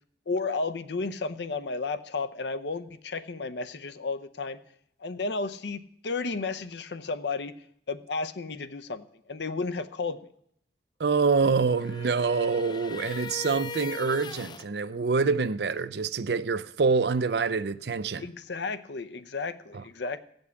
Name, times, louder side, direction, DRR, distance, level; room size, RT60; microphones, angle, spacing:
voice 1, 0.3-4.6 5.0-10.2 18.2-20.2, left 3 dB, 75° left, 0.7 m, -33 dB
voice 2, 11.0-18.3 19.7-19.8, right 4 dB, 65° right, 0.5 m, -26 dB
sound 1, 11.1-14.7, left 3 dB, 25° left, 0.4 m, -40 dB
15.5 x 5.3 x 8.2 m
head